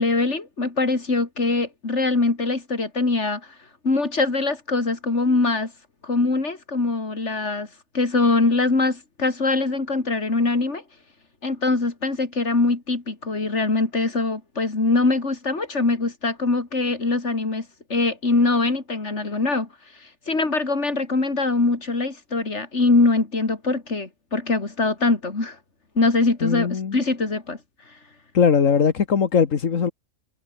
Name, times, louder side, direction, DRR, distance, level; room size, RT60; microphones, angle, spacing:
voice 1, 0.0-3.4 3.8-5.7 6.0-7.7 7.9-10.8 11.4-19.7 20.3-25.6 26.0-27.6, left 3 dB, 65° left, 3.7 m, -22 dB
voice 2, 26.4-27.0 28.3-29.9, left 6 dB, 85° left, 1.9 m, -20 dB
omnidirectional pair, 1.3 m